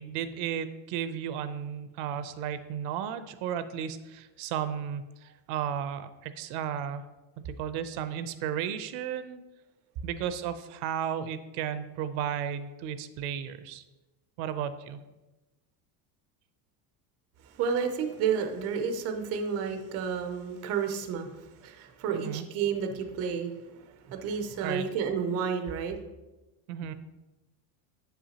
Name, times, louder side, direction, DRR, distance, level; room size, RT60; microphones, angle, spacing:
voice 1, 0.0-7.0 7.4-9.4 10.0-13.8 14.4-15.0 22.1-22.5 24.6-24.9 26.7-26.9, right 9 dB, 75° right, 12 dB, 0.6 m, -34 dB
voice 2, 17.4-26.0, right 6 dB, 30° right, 6 dB, 0.5 m, -31 dB
8.0 x 5.8 x 2.8 m, 1.1 s
cardioid pair, 165°, 49 cm